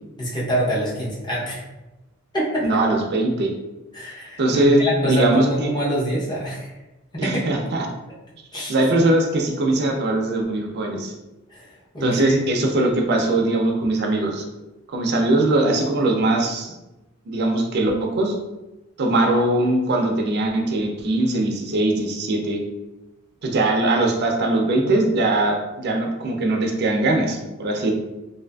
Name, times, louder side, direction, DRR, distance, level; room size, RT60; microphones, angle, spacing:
voice 1, 0.2-1.6 2.3-2.7 3.9-6.7 7.1-7.4 8.5-8.7 11.5-12.4, right 1 dB, 20° left, -5 dB, 0.7 m, -25 dB
voice 2, 2.6-3.5 4.4-5.7 7.2-7.9 8.7-11.1 12.0-14.4 14.9-16.8 17.3-18.4 19.0-22.6 23.4-27.9, right 2 dB, 55° right, 2 dB, 0.4 m, -21 dB
2.6 x 2.4 x 2.2 m, 1.0 s
head